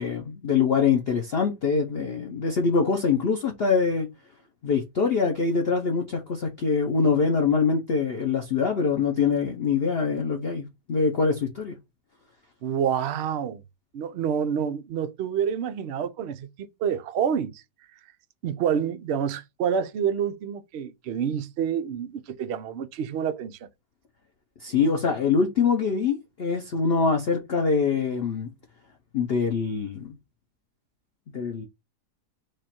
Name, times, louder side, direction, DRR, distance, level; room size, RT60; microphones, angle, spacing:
voice 1, 0.0-4.1 4.6-11.8 24.6-28.5 29.1-30.2 31.3-31.7, left 5 dB, 50° left, 0.7 m, -24 dB
voice 2, 12.6-13.6 13.9-17.6 18.4-23.7, right 8 dB, 75° right, 0.6 m, -28 dB
4.9 x 2.4 x 4.3 m
omnidirectional pair, 1.8 m